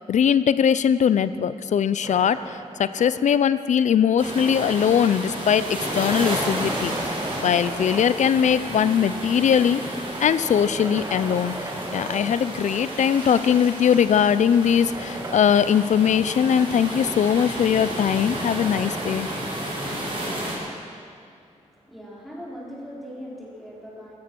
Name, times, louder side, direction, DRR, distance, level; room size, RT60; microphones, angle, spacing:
voice 1, 0.1-6.9 7.4-9.8 10.2-19.3, left 8 dB, 70° left, 15 dB, 0.5 m, -21 dB
sound 1, 2.0-3.6 5.4-8.6 10.1-13.3 14.8-15.4, right 2 dB, 25° right, 1.6 m, -36 dB
sound 2, 4.2-20.5, right 1 dB, 45° right, 4.9 m, -32 dB
voice 2, 21.4-24.1, equal, ahead, -5 dB, 4.2 m, -40 dB
15.0 x 14.5 x 6.1 m, 2.3 s
wide cardioid pair, 115°, 13 cm